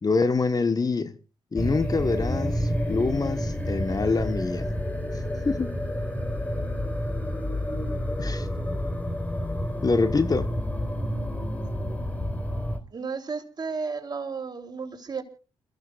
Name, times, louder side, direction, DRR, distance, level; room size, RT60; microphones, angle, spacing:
voice 1, 0.0-1.2 1.5-4.8 5.4-5.7 8.2-8.5 9.8-10.5, left 4 dB, 35° left, 1.3 m, -25 dB
sound 1, 1.6-12.8, equal, 15° left, 4.4 m, -29 dB
voice 2, 12.9-15.2, right 5 dB, 40° right, 3.4 m, -33 dB
29.0 x 15.0 x 2.5 m
hypercardioid pair, 40°, 11 cm